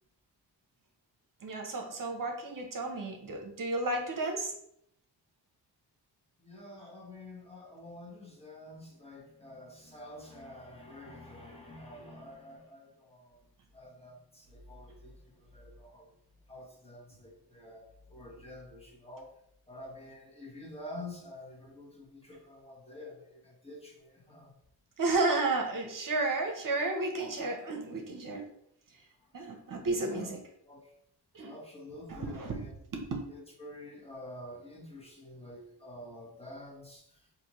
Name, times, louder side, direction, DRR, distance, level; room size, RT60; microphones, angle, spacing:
voice 1, 1.4-4.5 25.0-28.5 28.9-29.0 29.3-30.4 31.3-31.6 32.1-33.2, right 2 dB, 55° right, 2 dB, 0.8 m, -32 dB
voice 2, 6.4-13.4 13.7-16.1 16.5-19.3 19.7-24.5 30.0-30.4 30.6-30.9 31.4-32.7 33.3-37.2, left 1 dB, 15° left, -3 dB, 1.1 m, -48 dB
4.2 x 2.6 x 2.9 m, 0.72 s
cardioid pair, 65°, 40 cm